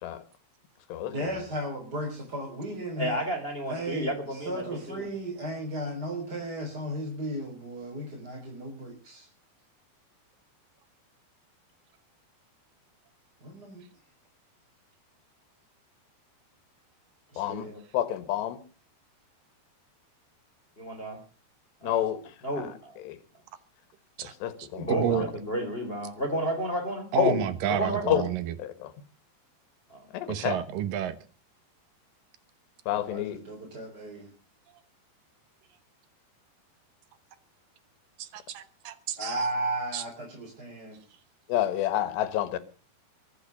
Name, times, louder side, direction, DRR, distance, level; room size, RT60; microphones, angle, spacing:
voice 1, 1.0-3.1 3.7-9.3 13.4-13.8 17.3-17.7 33.0-34.3 39.2-41.0, right 1 dB, 25° right, -1 dB, 4.4 m, -35 dB
voice 2, 3.0-5.1 17.6-17.8 20.8-21.2 21.8-22.0 22.4-23.0 24.7-27.1 27.7-28.2 29.9-30.0, right 1 dB, 15° left, 5 dB, 3.2 m, -32 dB
voice 3, 17.4-17.7 17.9-18.6 21.8-22.2 22.6-22.7 23.1-23.2 24.4-25.2 27.2-27.5 28.1-28.2 28.6-28.9 30.1-30.6 32.9-33.4 41.5-42.6, left 12 dB, 80° left, 12 dB, 3.6 m, -28 dB
voice 4, 24.6-25.3 27.1-28.5 30.3-31.2 38.2-39.5 39.9-40.0, right 10 dB, 70° right, 12 dB, 2.4 m, -30 dB
23.0 x 8.5 x 6.8 m, 0.38 s
omnidirectional pair, 4.9 m